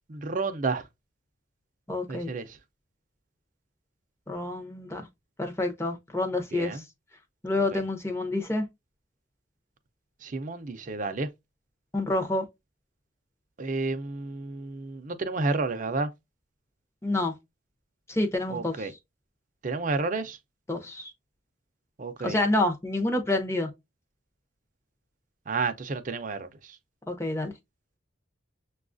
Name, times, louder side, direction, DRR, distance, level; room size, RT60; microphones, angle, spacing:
voice 1, 0.1-0.8 2.1-2.6 6.5-6.8 7.7-7.8 10.2-11.3 13.6-16.1 18.5-18.9 19.6-20.4 22.0-22.4 25.5-26.8, right 3 dB, 40° right, 0.5 m, -31 dB
voice 2, 1.9-2.3 4.3-5.0 5.4-6.8 7.4-8.7 11.9-12.4 17.0-17.4 18.1-18.9 20.7-21.1 22.2-23.7 27.1-27.5, left 2 dB, 15° left, 0.6 m, -28 dB
6.7 x 2.3 x 2.5 m
head